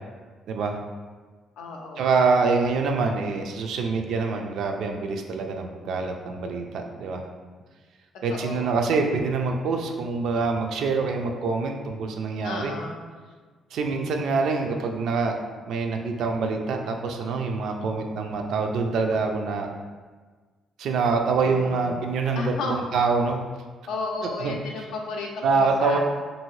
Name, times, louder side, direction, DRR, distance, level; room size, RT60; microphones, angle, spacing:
voice 1, 0.5-0.8 2.0-7.3 8.2-12.7 13.7-15.3 15.7-19.7 20.8-23.4 24.2-24.5 25.4-26.0, right 4 dB, 75° right, 3 dB, 0.3 m, -25 dB
voice 2, 1.6-2.1 8.3-8.7 12.4-13.1 21.4-22.0 22.3-23.0 23.9-26.0, left 3 dB, 90° left, 0 dB, 0.5 m, -33 dB
2.7 x 2.6 x 3.1 m, 1.4 s
cardioid pair, 90°, 0 cm